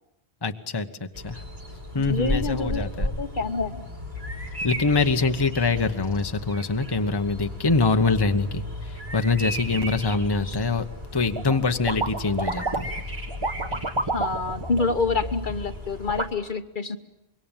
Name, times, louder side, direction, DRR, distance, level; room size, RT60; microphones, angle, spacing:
voice 1, 0.4-1.4 1.9-3.1 4.6-10.8 11.1-12.9, left 3 dB, 25° left, 8 dB, 1.1 m, -24 dB
Bird vocalization bird call bird song, 1.1-16.3, left 1 dB, 80° right, 7.3 m, -34 dB
voice 2, 2.0-3.9 10.4-10.6 14.1-17.0, left 4 dB, 55° left, 9 dB, 1.3 m, -27 dB
sound 1, 11.3-11.6 11.9-13.0 13.3-15.5 16.1-16.3, right 3 dB, 25° right, 1.4 m, -29 dB
25.5 x 23.0 x 9.0 m, 0.91 s
omnidirectional pair, 1.0 m